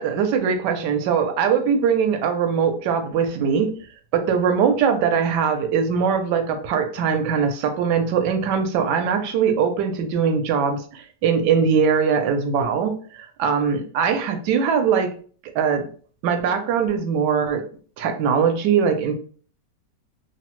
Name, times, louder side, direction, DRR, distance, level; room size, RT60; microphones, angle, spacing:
voice 1, 0.0-3.8 4.1-15.1 15.5-15.9 16.2-17.6 18.0-19.1, right 6 dB, 75° right, 6 dB, 1.1 m, -21 dB
3.0 x 2.0 x 2.9 m, 0.43 s
omnidirectional pair, 1.9 m